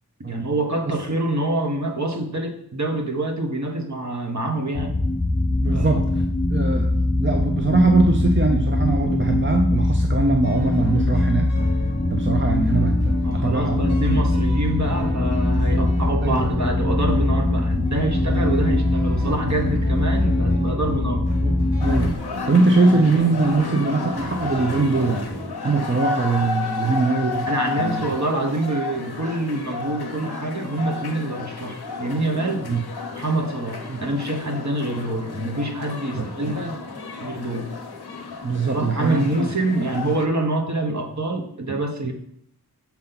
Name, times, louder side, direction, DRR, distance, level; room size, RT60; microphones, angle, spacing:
voice 1, 0.2-5.0 5.7-6.0 13.2-21.3 27.5-32.7 33.2-36.8 37.2-37.7 38.7-42.1, right 2 dB, 45° right, 3 dB, 1.2 m, -26 dB
sound 1, 4.7-22.1, left 2 dB, 15° left, 0.4 m, -22 dB
voice 2, 5.6-6.2 6.5-6.9 7.2-11.5 12.1-13.8 15.6-16.0 16.2-16.5 18.3-18.4 21.4-22.2 22.5-25.3 25.6-27.5 27.8-28.1 32.7-32.9 33.9-34.0 36.2-36.3 38.4-39.5 42.0-42.1, right 3 dB, 30° right, 3 dB, 0.7 m, -22 dB
sound 2, 10.4-25.5, left 1 dB, 80° right, 1.7 m, -35 dB
sound 3, 21.8-40.3, left 4 dB, 90° left, 0.9 m, -32 dB
7.2 x 4.4 x 4.0 m, 0.76 s
wide cardioid pair, 60°, 38 cm